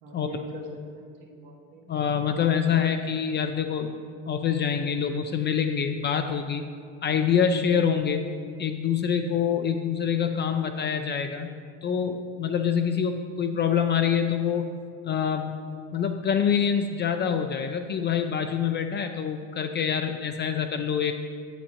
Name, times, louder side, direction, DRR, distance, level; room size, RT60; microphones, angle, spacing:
voice 1, 0.0-2.2, right 1 dB, 75° right, -1 dB, 1.3 m, -42 dB
voice 2, 1.9-4.0 4.3-6.6 7.0-8.2 8.6-11.5 11.8-14.7 15.0-15.5 15.9-21.1, left 7 dB, 30° left, 6 dB, 0.4 m, -25 dB
7.2 x 6.9 x 2.9 m, 2.1 s
supercardioid pair, 85°, 36 cm